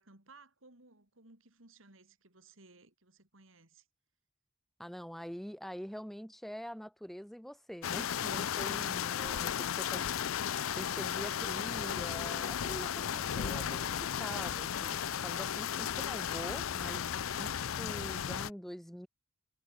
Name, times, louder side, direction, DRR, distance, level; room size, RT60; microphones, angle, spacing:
voice 1, 0.0-3.9 9.4-10.0, right 3 dB, 70° right, 4.0 m, -59 dB
voice 2, 4.8-10.0 10.8-17.1 17.4-19.1, equal, ahead, 0.7 m, -45 dB
sound 1, 7.8-18.5, left 9 dB, 85° left, 0.5 m, -35 dB
head